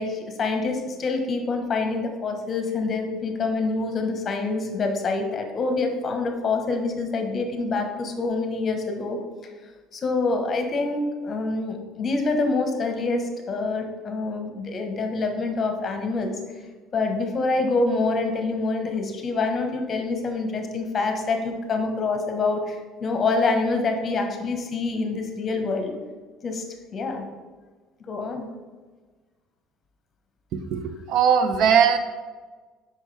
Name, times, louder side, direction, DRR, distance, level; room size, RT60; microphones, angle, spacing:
voice 1, 0.0-9.2 9.9-16.4 16.9-25.9 26.4-26.6 26.9-27.3 28.1-28.5, left 3 dB, 40° left, 4 dB, 1.1 m, -26 dB
voice 2, 31.1-32.0, right 7 dB, 65° right, 9 dB, 0.5 m, -18 dB
6.3 x 5.3 x 3.3 m, 1.4 s
supercardioid pair, 100°, 0 cm